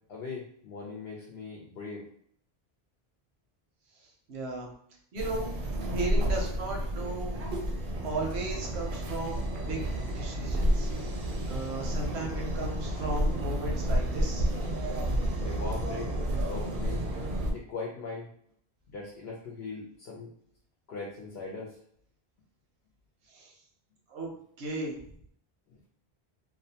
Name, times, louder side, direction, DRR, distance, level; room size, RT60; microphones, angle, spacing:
voice 1, 0.1-2.1 15.4-17.1 17.5-18.3 18.9-20.3 20.9-21.8 25.7-25.8, left 3 dB, 75° left, -2 dB, 0.8 m, -40 dB
voice 2, 4.3-4.7 5.1-5.5 5.9-7.4 8.0-9.8 10.1-10.9 11.2-14.5 23.3-23.5 24.1-24.3 24.6-25.0, right 2 dB, 90° right, -1 dB, 1.0 m, -36 dB
sound 1, 5.2-17.5, right 1 dB, 60° right, 0.6 m, -30 dB
2.6 x 2.1 x 2.7 m, 0.63 s
omnidirectional pair, 1.1 m